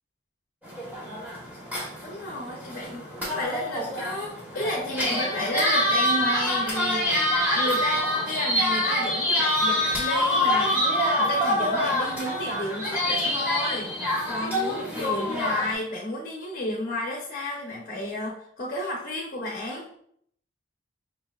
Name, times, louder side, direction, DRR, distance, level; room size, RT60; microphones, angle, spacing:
sound 1, 0.6-15.7, left 1 dB, 10° right, 1.1 m, -26 dB
voice 1, 2.0-7.3 7.5-10.8 11.2-19.9, left 1 dB, 45° left, -3 dB, 0.8 m, -32 dB
5.4 x 2.8 x 2.3 m, 0.65 s
head